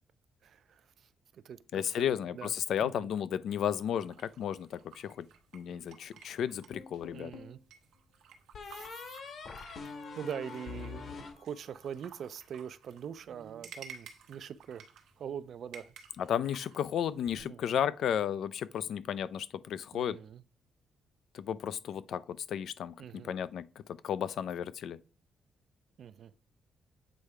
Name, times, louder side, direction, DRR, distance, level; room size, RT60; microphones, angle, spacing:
voice 1, 0.4-2.5 2.8-3.1 7.1-7.6 8.7-9.2 9.6-14.8 15.2-15.9 17.4-17.8 19.9-20.4 23.0-23.3 26.0-26.3, right 8 dB, 60° right, 0.4 m, -43 dB
voice 2, 1.7-5.3 5.5-7.3 16.2-20.2 21.3-22.9 23.2-25.0, left 9 dB, 70° left, 0.4 m, -33 dB
sound 1, 3.9-17.4, right 6 dB, 90° right, 1.0 m, -55 dB
sound 2, 6.7-7.6 8.5-12.0, left 5 dB, 50° left, 1.2 m, -45 dB
8.3 x 3.3 x 4.7 m
cardioid pair, 125°, 0 cm